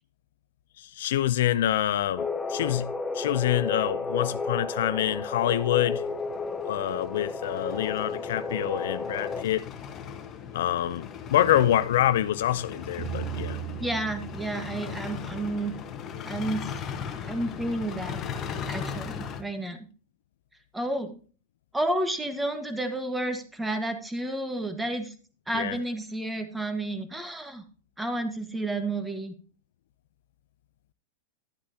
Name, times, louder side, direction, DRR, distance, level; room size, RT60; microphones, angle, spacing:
voice 1, 0.8-6.1 6.6-9.6 10.5-13.6 25.5-25.8, left 12 dB, 75° left, 0.5 m, -26 dB
sound 1, 2.2-9.4, left 3 dB, 10° left, 0.7 m, -32 dB
sound 2, 5.0-19.4, left 7 dB, 30° left, 1.2 m, -38 dB
sound 3, 13.0-15.9, right 12 dB, 75° right, 1.7 m, -38 dB
voice 2, 13.8-15.7 16.2-16.7 17.2-18.2 18.7-19.9 20.7-21.2 21.7-25.1 25.5-27.6 28.0-29.3, right 1 dB, 5° right, 1.4 m, -31 dB
11.5 x 8.6 x 2.8 m
hypercardioid pair, 125°, 0 cm